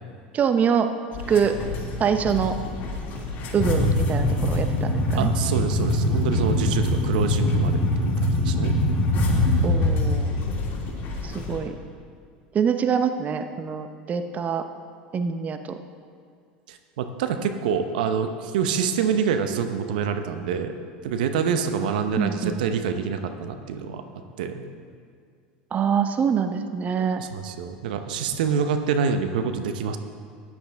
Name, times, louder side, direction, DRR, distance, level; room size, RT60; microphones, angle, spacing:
voice 1, 0.3-0.9 1.3-1.5 2.0-2.6 3.5-5.3 9.6-10.4 11.2-11.8 12.5-14.6 15.1-15.8 22.2-22.6 25.7-27.2, right 7 dB, 30° right, 8 dB, 0.7 m, -24 dB
sound 1, 1.1-11.6, left 1 dB, 45° left, 2.8 m, -24 dB
voice 2, 5.2-8.8 16.7-20.7 21.0-24.0 24.4-24.6 27.2-30.0, right 6 dB, 70° right, 8 dB, 0.8 m, -26 dB
14.0 x 10.0 x 3.5 m, 2.2 s
hypercardioid pair, 85°, 5 cm